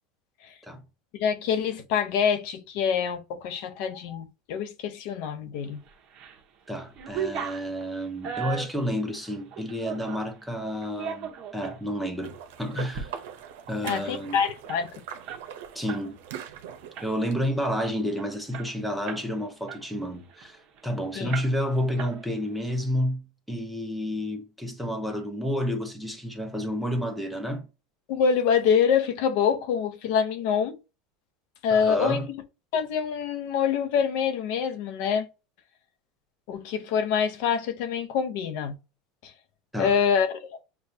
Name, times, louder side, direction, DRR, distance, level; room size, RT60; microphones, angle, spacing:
voice 1, 1.1-5.8 13.8-14.9 21.2-21.3 28.1-30.8 31.6-32.2 32.7-35.3 36.5-38.7 39.2-39.3 39.8-40.6, left 7 dB, 60° left, 0.6 m, -25 dB
sound 1, 5.9-6.4 6.7-10.3 10.8-11.8 12.2-12.4 12.8-13.1 13.4-13.5 13.8-16.1 16.4-16.6 17.0-17.4 17.9-18.0 18.2-19.3 19.7-20.9 21.3-21.7 22.0-22.6, right 7 dB, 40° right, 1.0 m, -37 dB
voice 2, 6.7-13.1 13.7-14.4 15.7-16.2 17.0-27.7 31.7-32.3 39.7-39.9, equal, ahead, 0.7 m, -30 dB
sound 2, 12.2-17.3, right 9 dB, 85° right, 0.7 m, -41 dB
6.6 x 2.3 x 2.7 m
supercardioid pair, 155°, 0 cm